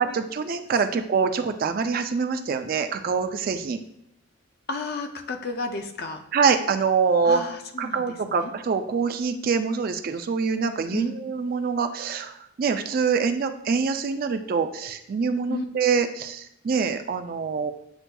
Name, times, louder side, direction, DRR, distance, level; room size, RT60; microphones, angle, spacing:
voice 1, 0.0-3.8 6.3-7.4 7.8-12.3 12.6-17.7, right 5 dB, 45° right, 8 dB, 0.3 m, -25 dB
voice 2, 4.7-6.2 7.2-8.5 10.9-11.2 15.5-15.7, left 3 dB, 45° left, 6 dB, 0.4 m, -32 dB
7.8 x 2.6 x 2.2 m, 0.78 s
head